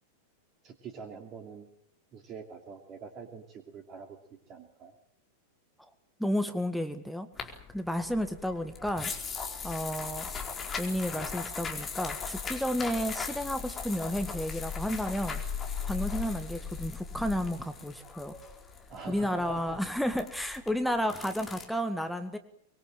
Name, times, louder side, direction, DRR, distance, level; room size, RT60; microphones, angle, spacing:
voice 1, 0.6-1.7 2.1-4.2 4.5-4.9 18.9-19.8, right 5 dB, 30° right, 6 dB, 2.7 m, -44 dB
voice 2, 6.2-9.1 9.6-10.3 10.8-15.4 15.8-18.3 19.1-22.4, equal, ahead, 7 dB, 1.9 m, -32 dB
sound 1, 7.4-21.6, left 6 dB, 20° left, 4.6 m, -38 dB
25.0 x 21.5 x 7.9 m, 0.67 s
figure-of-eight pair, 90°, 0 cm